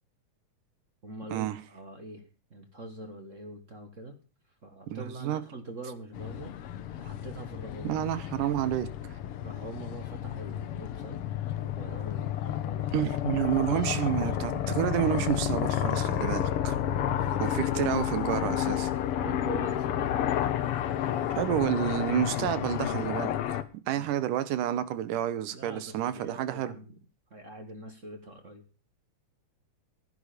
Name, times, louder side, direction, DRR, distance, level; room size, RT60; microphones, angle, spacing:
voice 1, 1.0-4.2 4.6-6.6 7.0-8.0 9.4-11.2 11.5-13.1 16.9-18.0 19.2-20.9 21.4-21.5 25.5-27.0 27.3-28.6, right 2 dB, 40° right, 1.1 m, -44 dB
voice 2, 4.9-5.4 7.8-8.9 12.9-16.8 17.4-18.9 21.4-23.6 23.9-26.8, right 11 dB, 80° right, 2.6 m, -29 dB
sound 1, 6.1-23.6, left 11 dB, 65° left, 1.5 m, -31 dB
15.5 x 10.5 x 5.0 m
omnidirectional pair, 3.7 m